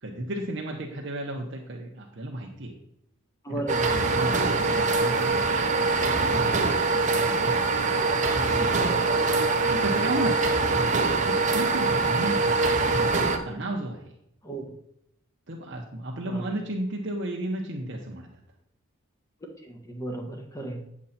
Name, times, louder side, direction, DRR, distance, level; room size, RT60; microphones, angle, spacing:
voice 1, 0.0-2.8 3.5-6.6 7.2-8.1 9.7-10.4 11.2-12.6 13.2-14.1 15.5-18.4, right 1 dB, 60° right, -1 dB, 1.2 m, -34 dB
voice 2, 3.4-3.9 4.6-4.7 8.0-8.1 11.0-11.1 14.4-14.7 16.2-16.5 19.6-20.8, right 2 dB, 15° left, 2 dB, 1.4 m, -35 dB
sound 1, 3.7-13.4, right 3 dB, 35° right, 1.0 m, -23 dB
8.8 x 7.4 x 4.3 m, 0.77 s
head